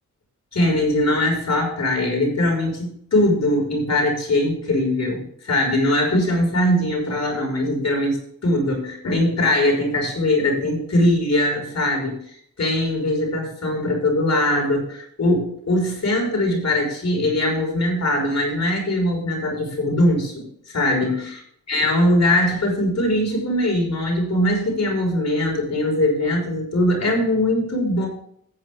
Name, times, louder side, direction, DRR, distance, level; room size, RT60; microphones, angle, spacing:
voice 1, 0.5-8.2 8.4-21.4 21.7-28.1, left 1 dB, 55° left, 0 dB, 5.7 m, -21 dB
14.0 x 9.3 x 3.7 m, 0.66 s
wide cardioid pair, 90°, 31 cm